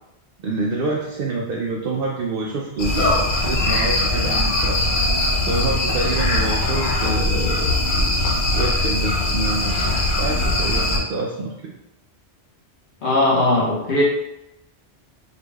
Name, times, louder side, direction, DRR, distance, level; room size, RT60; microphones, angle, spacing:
voice 1, 0.4-4.8 5.5-7.7 8.6-9.8 10.1-11.7, right 3 dB, 65° right, -2 dB, 0.7 m, -27 dB
sound 1, 2.8-11.0, left 2 dB, 55° left, 0.8 m, -21 dB
voice 2, 13.0-14.0, left 1 dB, 90° left, -5 dB, 1.5 m, -18 dB
4.7 x 3.5 x 2.3 m, 0.91 s
omnidirectional pair, 1.1 m